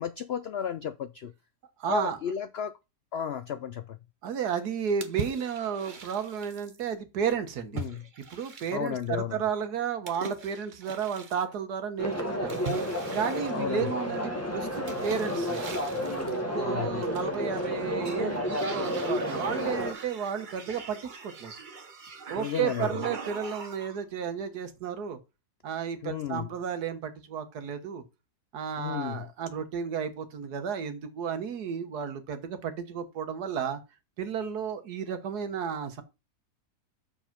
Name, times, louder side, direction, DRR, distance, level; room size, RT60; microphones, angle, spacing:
voice 1, 0.0-1.3 1.9-2.7 3.1-4.0 7.7-8.0 8.7-9.4 13.5-13.9 16.6-17.0 22.4-22.9 26.0-26.5 28.8-29.2, left 8 dB, 85° left, 0.5 m, -33 dB
voice 2, 1.8-2.2 4.2-7.8 8.3-12.6 13.1-15.6 16.3-21.5 22.3-25.2 25.6-28.0 28.5-33.8 34.2-36.0, right 7 dB, 80° right, 1.6 m, -32 dB
sound 1, 5.0-6.8 7.8-9.0 10.1-11.4 12.5-14.2 14.9-16.4 17.0-17.7 18.0-24.0, right 5 dB, 35° right, 0.9 m, -41 dB
sound 2, 12.0-19.9, equal, 10° left, 1.0 m, -31 dB
6.3 x 4.9 x 5.8 m
omnidirectional pair, 1.7 m